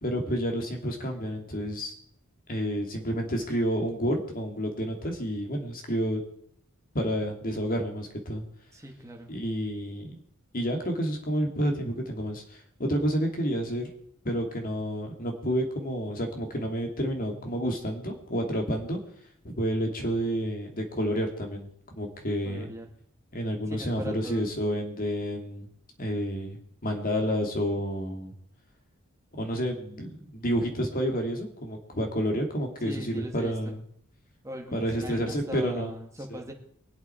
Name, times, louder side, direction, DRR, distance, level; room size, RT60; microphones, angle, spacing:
voice 1, 0.0-1.9 2.5-6.2 6.9-8.4 9.3-10.2 10.5-12.4 12.8-13.9 14.2-19.0 19.4-21.6 22.0-22.7 23.3-25.6 26.0-28.3 29.3-33.8 34.7-35.9 36.3-36.4, equal, 45° left, 3 dB, 2.6 m, -29 dB
voice 2, 8.7-9.3 22.4-22.9 23.7-24.5 32.8-33.7 34.4-36.5, right 1 dB, 15° right, 1 dB, 2.1 m, -40 dB
23.5 x 8.2 x 4.5 m, 0.64 s
head